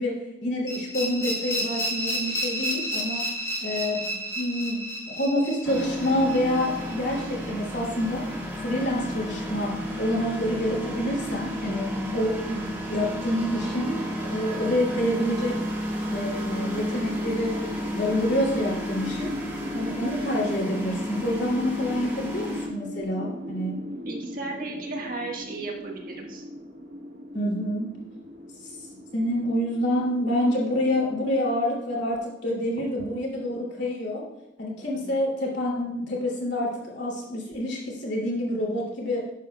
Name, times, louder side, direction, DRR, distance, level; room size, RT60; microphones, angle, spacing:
voice 1, 0.0-3.2 3.6-8.3 8.6-15.6 16.1-19.3 19.7-23.9 27.3-27.9 29.1-34.2 34.6-39.3, left 1 dB, 70° left, -3 dB, 2.6 m, -27 dB
sound 1, 0.7-7.5, equal, 15° left, 2.0 m, -31 dB
sound 2, 5.6-22.7, equal, 15° right, 1.5 m, -33 dB
sound 3, 15.1-31.2, equal, 65° right, 2.4 m, -39 dB
voice 2, 24.0-26.4 34.9-35.1, right 2 dB, 50° right, 0 dB, 1.5 m, -35 dB
11.0 x 7.6 x 2.3 m, 0.92 s
head